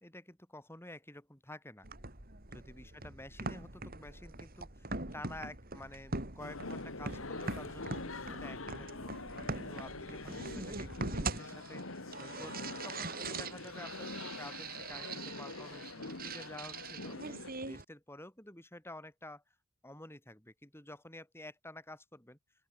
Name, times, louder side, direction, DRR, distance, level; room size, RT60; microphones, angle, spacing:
voice 1, 0.0-1.9 2.5-9.1 9.7-19.4 19.8-22.4, left 1 dB, 10° left, 5.2 m, -50 dB
sound 1, 1.8-17.8, right 3 dB, 45° right, 4.2 m, -42 dB
sound 2, 6.4-17.5, left 2 dB, 65° left, 2.3 m, -44 dB
open air
head